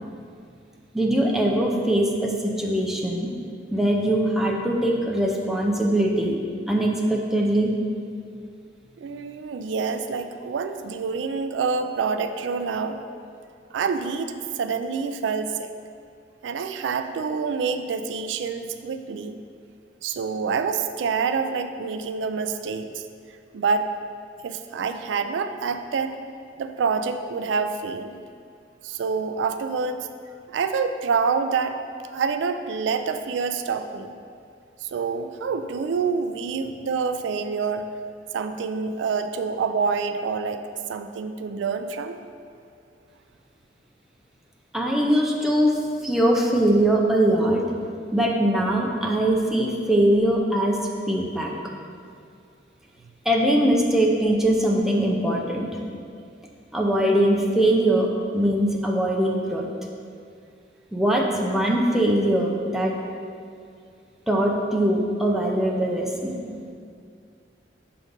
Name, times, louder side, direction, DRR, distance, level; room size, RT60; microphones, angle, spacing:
voice 1, 0.9-3.3 3.7-6.4 6.7-7.7 44.7-47.6 48.1-51.5 53.3-55.8 56.7-59.7 60.9-63.0 64.3-66.3, right 1 dB, ahead, -1 dB, 0.6 m, -22 dB
voice 2, 9.0-13.0 13.7-15.7 16.4-19.4 20.0-23.0 23.5-23.9 24.4-26.2 26.6-28.2 28.8-30.0 30.5-31.8 32.0-34.2 34.8-37.9 38.3-40.6 40.9-42.2, right 5 dB, 85° right, 8 dB, 0.3 m, -27 dB
6.2 x 3.9 x 5.2 m, 2.3 s
head